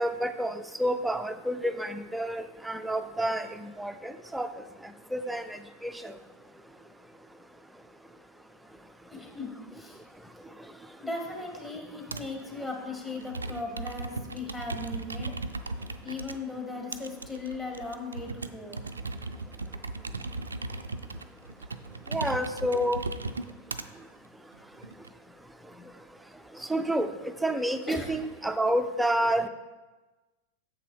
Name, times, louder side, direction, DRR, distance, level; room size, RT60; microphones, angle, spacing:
voice 1, 0.0-4.5 5.1-6.2 22.1-23.0 26.6-29.5, right 1 dB, 5° right, 8 dB, 0.5 m, -29 dB
voice 2, 9.1-10.0 11.0-15.3 16.0-18.8 27.9-28.1, left 3 dB, 15° left, 1 dB, 1.6 m, -37 dB
Computer keyboard, 12.1-12.4 13.2-16.4 16.9-23.9 24.5-25.1, right 3 dB, 75° right, 0.4 m, -37 dB
7.6 x 5.9 x 4.6 m, 1.2 s
figure-of-eight pair, 90°, 0 cm